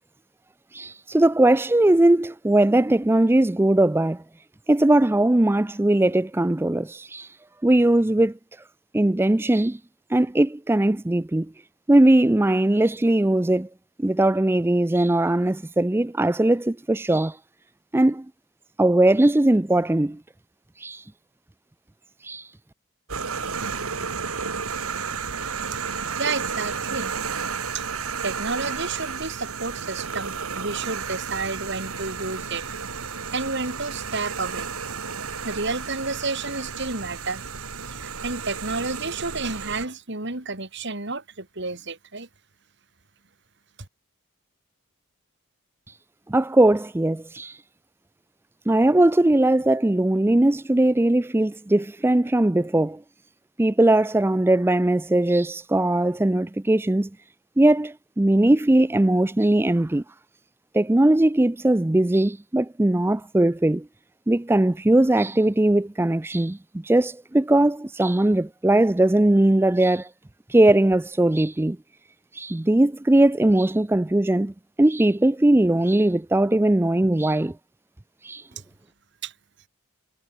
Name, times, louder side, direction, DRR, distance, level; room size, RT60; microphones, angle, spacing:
voice 1, 0.7-4.2 4.7-7.4 7.6-8.4 8.9-9.8 10.1-11.5 11.9-13.7 14.0-17.4 17.9-18.3 18.8-20.2 20.8-21.1 22.2-22.5 45.9-46.0 46.3-47.6 48.7-53.0 53.6-57.1 57.6-60.0 60.7-63.9 64.3-70.1 70.5-71.8 72.3-74.5 74.8-77.6 78.2-78.5, right 1 dB, 10° right, 0.4 m, -20 dB
sound 1, 23.1-39.9, right 6 dB, 80° right, 1.9 m, -32 dB
voice 2, 26.2-27.1 27.7-27.8 28.2-32.7 33.3-34.7 35.4-37.4 37.9-42.3 79.2-79.3, right 3 dB, 55° right, 2.8 m, -30 dB
head